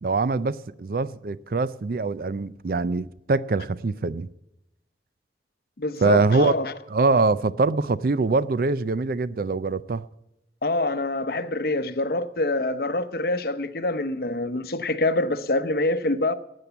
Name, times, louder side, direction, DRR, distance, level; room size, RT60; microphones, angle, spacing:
voice 1, 0.0-4.3 6.0-6.5 6.9-10.0, right 3 dB, 55° right, 0.5 m, -23 dB
voice 2, 5.8-6.7 10.6-16.3, left 2 dB, 55° left, 0.8 m, -25 dB
12.5 x 8.6 x 8.1 m
head